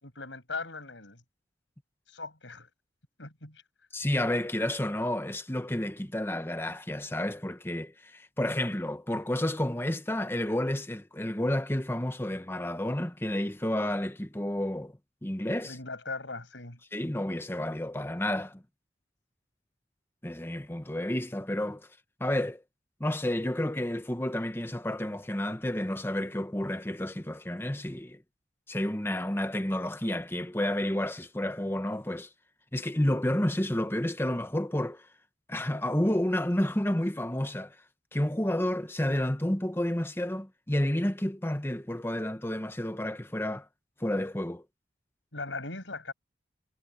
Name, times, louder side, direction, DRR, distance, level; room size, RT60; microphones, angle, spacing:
voice 1, 0.0-1.2 2.1-2.7 3.2-3.6 15.6-16.8 45.3-46.1, left 3 dB, 80° left, 6.4 m, -39 dB
voice 2, 3.9-14.9 15.2-15.7 16.9-18.6 20.2-21.9 22.2-22.6 23.0-28.2 28.7-32.3 32.7-35.0 35.5-37.8 38.1-43.7 44.0-44.6, left 1 dB, 10° left, 1.1 m, -30 dB
head